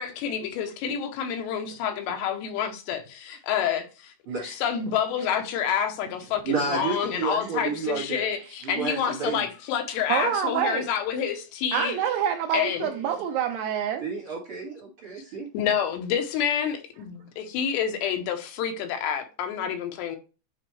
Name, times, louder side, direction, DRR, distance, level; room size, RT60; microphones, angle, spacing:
voice 1, 0.0-4.1 4.4-12.0 12.5-12.9 15.5-20.2, left 8 dB, 80° left, 3.0 m, -28 dB
voice 2, 6.5-8.3 8.6-9.5 14.0-15.5, right 5 dB, 45° right, 1.9 m, -31 dB
voice 3, 10.1-10.9 11.7-14.1, right 9 dB, 80° right, 2.4 m, -27 dB
9.0 x 4.2 x 3.1 m
omnidirectional pair, 5.1 m